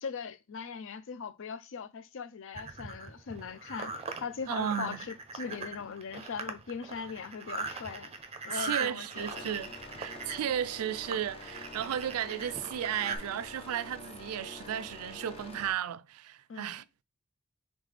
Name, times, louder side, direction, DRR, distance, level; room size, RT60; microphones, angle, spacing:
voice 1, 0.0-3.9 4.2-8.1 8.4-9.4 16.5-16.9, left 6 dB, 65° left, 0.5 m, -40 dB
sound 1, 2.6-13.2, right 4 dB, 30° right, 0.6 m, -40 dB
voice 2, 4.5-5.0 8.5-16.8, right 10 dB, 85° right, 0.3 m, -34 dB
sound 2, 9.2-15.7, left 2 dB, 30° left, 0.7 m, -47 dB
4.0 x 3.5 x 3.3 m
head